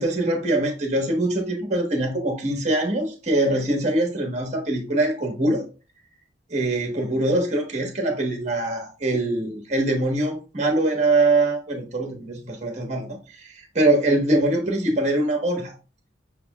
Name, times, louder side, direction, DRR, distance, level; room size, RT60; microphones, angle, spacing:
voice 1, 0.0-5.6 6.5-13.1 13.4-15.7, right 2 dB, 40° right, 2 dB, 1.2 m, -23 dB
6.0 x 3.5 x 2.3 m, 0.34 s
head